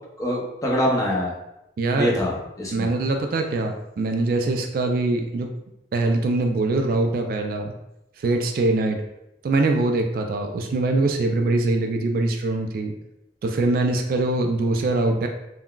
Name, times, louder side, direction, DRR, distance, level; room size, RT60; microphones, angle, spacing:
voice 1, 0.2-1.3 1.9-2.9, equal, 20° left, -3 dB, 0.6 m, -24 dB
voice 2, 1.8-2.1 2.7-5.5 5.9-7.7 8.2-9.0 9.4-12.9 13.4-15.3, right 2 dB, 55° right, 4 dB, 0.3 m, -23 dB
3.7 x 2.2 x 2.3 m, 0.88 s
head